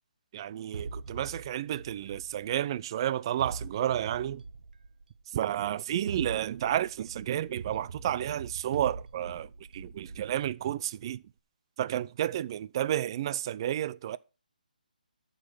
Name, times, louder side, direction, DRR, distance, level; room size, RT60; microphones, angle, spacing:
voice 1, 0.3-4.4 5.3-9.5 9.7-11.2 11.8-14.2, right 11 dB, 30° right, 0.5 m, -31 dB
sound 1, 0.7-2.9 3.4-5.2 5.9-11.0, right 4 dB, 65° right, 1.2 m, -43 dB
12.0 x 6.6 x 6.2 m
hypercardioid pair, 160°, 5 cm